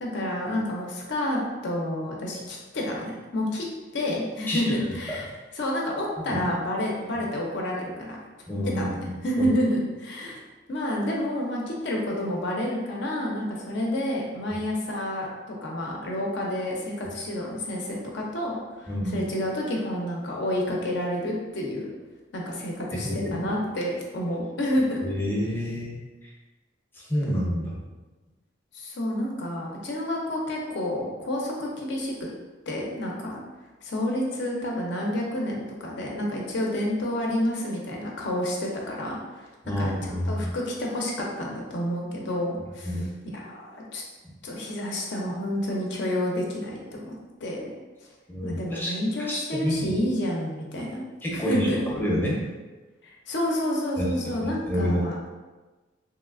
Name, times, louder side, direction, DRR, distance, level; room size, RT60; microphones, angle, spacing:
voice 1, 0.0-3.7 3.9-5.3 5.5-8.2 8.6-8.9 9.2-10.4 10.7-21.9 22.3-25.2 28.7-32.1 32.7-33.4 33.8-43.1 43.3-44.0 44.4-47.7 48.4-51.0 51.3-51.8 53.3-55.1, left 1 dB, 60° left, -2 dB, 0.5 m, -29 dB
voice 2, 8.5-9.5 18.9-19.2 22.9-23.5 25.0-26.3 27.0-27.7 39.6-40.5 42.8-43.0 48.3-48.9 49.2-50.0 51.2-52.4 54.0-54.1 54.4-55.0, equal, 10° left, -5 dB, 0.6 m, -28 dB
3.1 x 2.9 x 2.4 m, 1.2 s
head